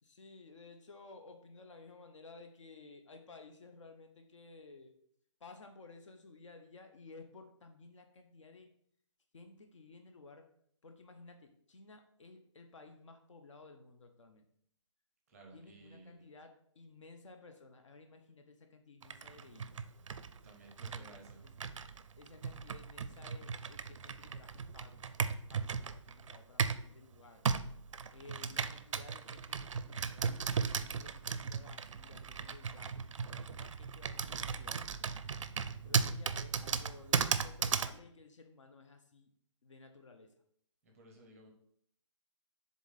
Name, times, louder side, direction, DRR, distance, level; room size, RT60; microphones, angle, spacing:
voice 1, 0.0-4.9 5.4-8.7 9.3-10.5 10.8-14.5 15.5-19.8 21.0-21.2 21.4-21.5 22.2-27.4 28.1-34.8 35.8-39.3 39.6-40.3, left 3 dB, 70° left, 6 dB, 0.9 m, -56 dB
voice 2, 15.3-16.3 20.4-21.4 40.8-41.5, right 2 dB, 5° right, 1 dB, 0.6 m, -57 dB
Computer keyboard, 19.0-26.9 27.5-38.0, right 6 dB, 80° right, 0.5 m, -36 dB
7.0 x 3.8 x 4.0 m, 0.66 s
hypercardioid pair, 175°, 16 cm